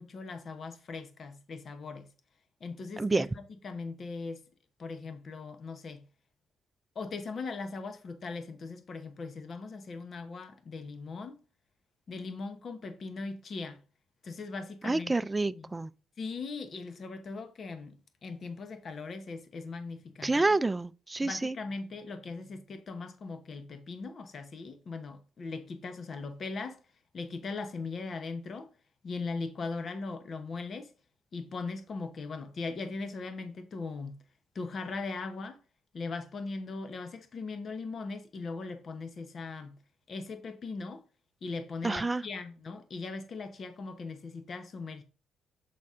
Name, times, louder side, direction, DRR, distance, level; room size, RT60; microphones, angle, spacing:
voice 1, 0.0-2.1 2.6-4.4 4.8-6.0 6.9-11.4 12.1-13.8 14.2-15.1 15.5-15.7 16.2-20.5 21.2-26.8 27.1-28.7 29.0-30.9 31.3-34.2 34.5-35.6 35.9-39.8 40.1-41.0 41.4-45.0, left 4 dB, 50° left, 0.9 m, -39 dB
voice 2, 3.0-3.3 14.8-15.9 20.2-21.6 41.8-42.2, right 2 dB, 20° right, 0.4 m, -28 dB
7.6 x 4.1 x 3.6 m
cardioid pair, 90°, 0 cm